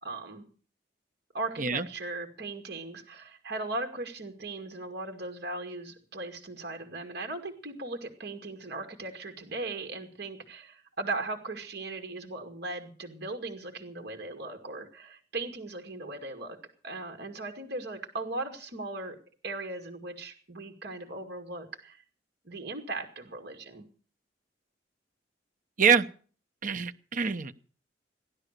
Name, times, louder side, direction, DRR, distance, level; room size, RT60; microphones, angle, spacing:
voice 1, 0.0-0.5 1.3-16.6 16.8-19.2 19.4-22.0 22.4-23.9, right 2 dB, 60° right, 4 dB, 2.3 m, -38 dB
voice 2, 26.6-27.6, right 6 dB, 45° right, 9 dB, 0.9 m, -25 dB
15.5 x 11.0 x 6.7 m, 0.42 s
head